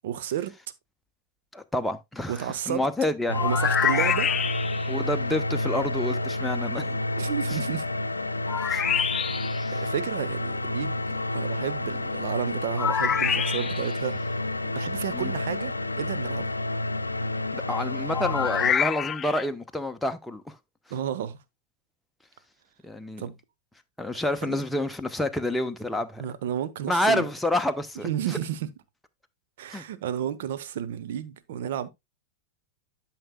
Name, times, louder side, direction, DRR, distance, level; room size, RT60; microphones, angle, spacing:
voice 1, 0.0-0.5 2.3-2.8 3.4-4.3 7.2-7.8 8.6-9.0 9.7-11.1 11.3-14.2 14.7-16.5 20.9-21.4 23.2-23.4 24.4-24.6 26.2-27.3 28.0-28.7 29.6-31.9, right 10 dB, 55° right, 1.0 m, -32 dB
voice 2, 1.5-3.4 4.9-7.0 7.5-7.6 8.7-8.8 15.1-15.3 17.5-20.5 22.8-23.3 24.0-26.2 26.9-28.4 29.7-29.8, left 1 dB, 5° left, 0.9 m, -28 dB
sound 1, 3.3-18.7, left 2 dB, 80° left, 0.6 m, -30 dB
sound 2, 3.3-4.9 8.5-9.6 12.8-14.0 18.1-19.4, left 8 dB, 25° left, 0.3 m, -26 dB
12.5 x 6.0 x 2.3 m
figure-of-eight pair, 90°, 0 cm